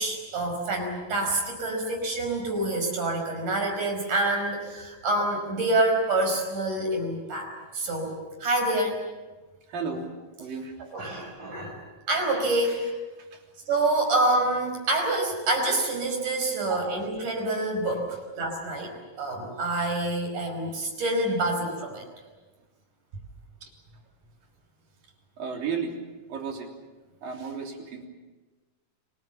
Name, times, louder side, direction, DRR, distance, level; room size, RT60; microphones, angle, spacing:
voice 1, 0.0-9.0 10.8-11.8 12.1-12.9 13.7-18.9 19.2-22.0, right 2 dB, 65° right, 3 dB, 6.7 m, -27 dB
voice 2, 9.7-10.1 10.4-10.7 13.3-13.4 23.6-23.7 25.4-25.9 26.3-26.7 27.2-28.0, right 5 dB, 90° right, 1 dB, 5.1 m, -33 dB
30.0 x 20.5 x 7.2 m, 1.2 s
omnidirectional pair, 3.9 m